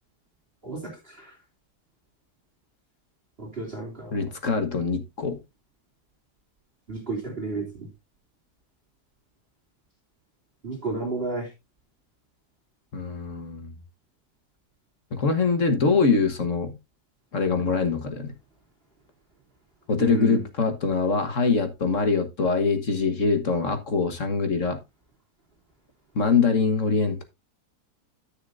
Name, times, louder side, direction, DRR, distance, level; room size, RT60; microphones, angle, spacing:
voice 1, 3.4-4.2 6.9-7.9 10.6-11.5 20.0-20.4, right 3 dB, 35° right, 2.6 m, -32 dB
voice 2, 4.1-5.4 12.9-13.7 15.1-16.7 17.3-18.3 19.9-24.8 26.1-27.2, left 4 dB, 50° left, 1.6 m, -23 dB
13.0 x 6.6 x 2.5 m
omnidirectional pair, 1.8 m